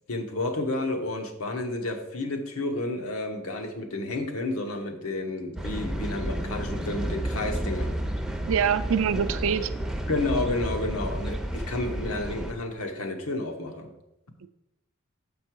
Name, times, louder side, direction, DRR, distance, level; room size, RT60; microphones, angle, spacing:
voice 1, 0.1-7.9 10.1-13.9, left 2 dB, 85° left, 4 dB, 1.0 m, -31 dB
sound 1, 5.6-12.5, right 1 dB, 5° right, 0.5 m, -31 dB
voice 2, 8.5-9.7 14.4-14.5, right 7 dB, 65° right, 12 dB, 0.4 m, -24 dB
6.6 x 5.4 x 4.6 m, 0.90 s
head